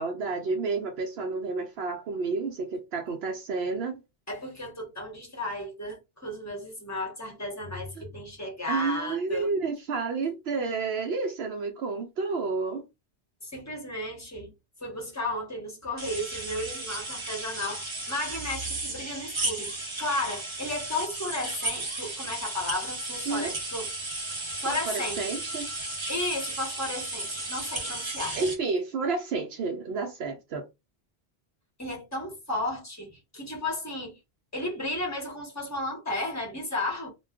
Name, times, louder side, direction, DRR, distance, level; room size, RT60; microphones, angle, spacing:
voice 1, 0.0-4.0 8.0-8.1 8.7-12.9 23.3-23.5 24.7-25.7 28.3-30.7, right 4 dB, 75° right, 0.8 m, -30 dB
voice 2, 4.3-9.5 13.4-14.5 14.8-23.9 24.6-25.3 26.1-28.4 31.8-34.2 34.5-37.1, left 1 dB, 15° left, 0.9 m, -34 dB
sound 1, 16.0-28.5, right 2 dB, 30° right, 0.7 m, -34 dB
2.2 x 2.2 x 3.5 m
omnidirectional pair, 1.1 m